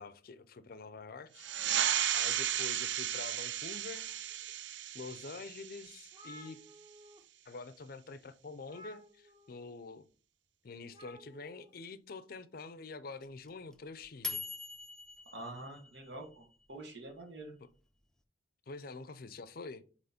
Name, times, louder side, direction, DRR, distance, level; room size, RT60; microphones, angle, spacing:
voice 1, 0.0-1.5 1.8-4.1 4.9-6.6 7.5-10.0 10.6-14.4 17.6-17.7 18.7-19.8, left 4 dB, 55° left, 0.5 m, -46 dB
sound 1, 1.4-6.5, right 10 dB, 85° right, 0.5 m, -34 dB
sound 2, 1.9-3.1 3.6-4.5 5.1-5.2 5.6-5.7 5.8-7.2 7.5-7.7 8.6-9.7 10.9-11.7, equal, 25° right, 1.2 m, -57 dB
sound 3, 13.2-16.4, left 5 dB, 5° left, 0.5 m, -42 dB
voice 2, 15.3-17.5, right 2 dB, 65° right, 1.6 m, -46 dB
7.6 x 3.1 x 4.3 m
head